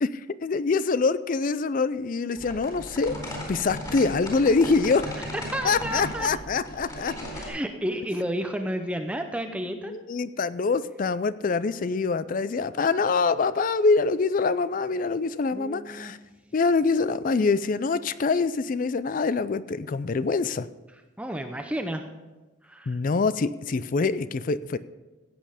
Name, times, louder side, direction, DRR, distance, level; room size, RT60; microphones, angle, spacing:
voice 1, 0.0-3.1 3.5-5.1 5.6-7.1 9.9-16.2 16.5-20.7 22.9-24.8, left 4 dB, 40° left, 16 dB, 0.4 m, -25 dB
sound 1, 2.4-7.5, left 1 dB, 20° left, 3.9 m, -37 dB
voice 2, 5.2-6.3 7.3-9.9 15.5-16.1 21.2-22.0 22.6-23.0, right 1 dB, 5° right, 6 dB, 0.6 m, -31 dB
15.5 x 8.5 x 5.0 m, 1.2 s
head